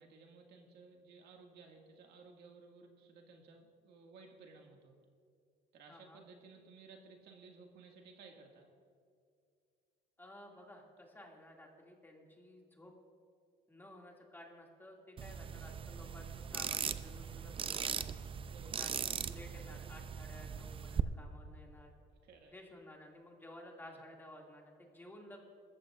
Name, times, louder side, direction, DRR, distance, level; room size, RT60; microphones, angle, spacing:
voice 1, 0.0-4.9 5.7-8.7 15.9-16.1 18.4-19.1 22.2-22.6 23.8-24.0, right 4 dB, 75° right, 1 dB, 2.0 m, -57 dB
voice 2, 5.9-6.2 10.2-12.9 13.7-18.2 18.8-21.9 22.5-25.4, left 1 dB, 10° left, 0 dB, 2.3 m, -54 dB
sound 1, 15.2-21.0, right 7 dB, 30° right, 0.5 m, -39 dB
20.5 x 14.0 x 2.5 m, 2.3 s
cardioid pair, 110°, 17 cm